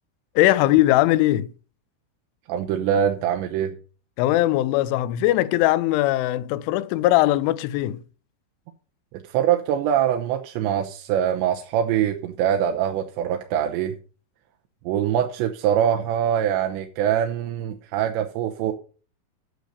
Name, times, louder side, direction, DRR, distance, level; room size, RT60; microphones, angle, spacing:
voice 1, 0.4-1.5 4.2-8.0, left 15 dB, 85° left, 3.0 m, -20 dB
voice 2, 2.5-3.8 9.2-14.0 14.9-18.7, right 9 dB, 80° right, 2.9 m, -23 dB
9.2 x 6.5 x 6.6 m
omnidirectional pair, 5.6 m